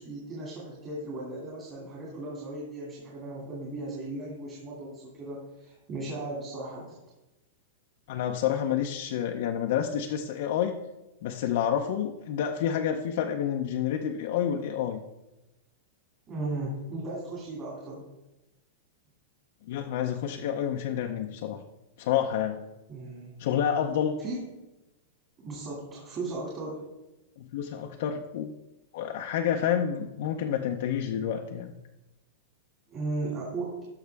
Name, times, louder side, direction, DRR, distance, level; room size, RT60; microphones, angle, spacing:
voice 1, 0.0-7.0 16.3-18.1 22.9-23.3 24.2-24.4 25.4-26.9 27.6-27.7 32.9-33.9, right 2 dB, 25° right, -4 dB, 2.3 m, -36 dB
voice 2, 8.1-10.8 11.2-15.0 19.7-21.6 22.0-22.6 23.4-24.2 27.4-28.5 28.9-31.7, left 9 dB, 55° left, 3 dB, 0.6 m, -29 dB
13.5 x 5.6 x 3.4 m, 0.99 s
supercardioid pair, 165°, 0 cm